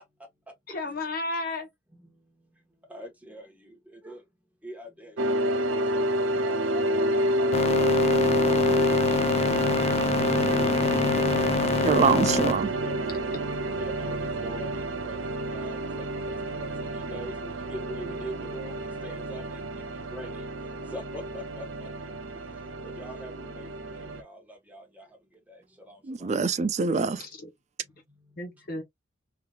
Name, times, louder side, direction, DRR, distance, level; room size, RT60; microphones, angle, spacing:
voice 1, 0.7-1.7 27.2-27.5 28.4-28.8, left 2 dB, 50° left, 0.8 m, -33 dB
voice 2, 2.9-3.4 4.0-4.2 4.6-5.1 5.4-7.1 7.3-7.6 11.5-12.3 12.8-13.2 13.8-14.7 15.0-15.2 15.5-15.8 16.6-16.7 16.9-17.3 17.7-18.8 19.0-19.4 20.1-20.3 20.9-21.6 23.0-23.7 24.7-24.8, equal, 10° right, 1.1 m, -41 dB
sound 1, 5.2-24.2, right 1 dB, 85° right, 0.6 m, -29 dB
sound 2, 7.5-12.5, left 4 dB, 30° left, 0.3 m, -25 dB
voice 3, 11.8-12.7 26.0-27.3, right 5 dB, 35° right, 0.4 m, -24 dB
3.4 x 2.7 x 2.3 m
head